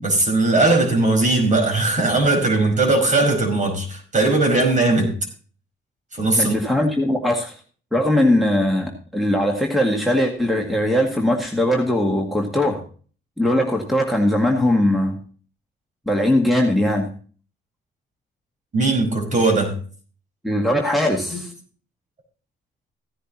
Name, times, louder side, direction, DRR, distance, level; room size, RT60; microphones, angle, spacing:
voice 1, 0.0-5.2 6.1-6.5 18.7-19.8 21.3-21.4, right 2 dB, 40° right, 3 dB, 5.1 m, -19 dB
voice 2, 6.4-7.6 7.9-12.8 13.4-15.2 16.1-17.1 20.4-21.5, left 1 dB, ahead, 2 dB, 1.9 m, -20 dB
16.0 x 10.0 x 2.9 m, 0.41 s
cardioid pair, 90°, 20 cm